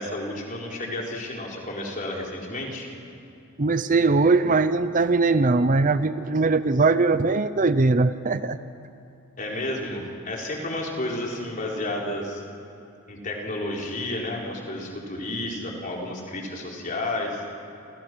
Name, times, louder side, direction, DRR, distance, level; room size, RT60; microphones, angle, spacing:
voice 1, 0.0-2.9 9.4-12.4 13.1-17.4, left 1 dB, 40° left, -1 dB, 4.4 m, -31 dB
voice 2, 3.6-8.6, right 3 dB, 35° right, 12 dB, 0.6 m, -21 dB
29.0 x 29.0 x 6.3 m, 2.6 s
head